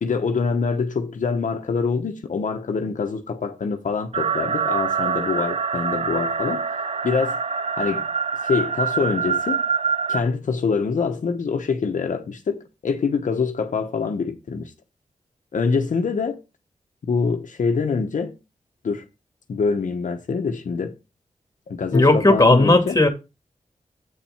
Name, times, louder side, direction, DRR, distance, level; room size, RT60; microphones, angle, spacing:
voice 1, 0.0-6.6 7.0-7.4 7.8-8.1 8.4-9.6 10.1-14.7 15.5-16.4 17.0-18.3 18.8-19.0 19.5-20.9 21.7-23.0, left 5 dB, 75° left, 1.0 m, -25 dB
sound 1, 4.1-10.2, right 6 dB, 50° right, 0.6 m, -25 dB
voice 2, 21.9-23.1, left 2 dB, 25° left, 1.9 m, -15 dB
8.3 x 4.4 x 5.6 m
wide cardioid pair, 70°, 13 cm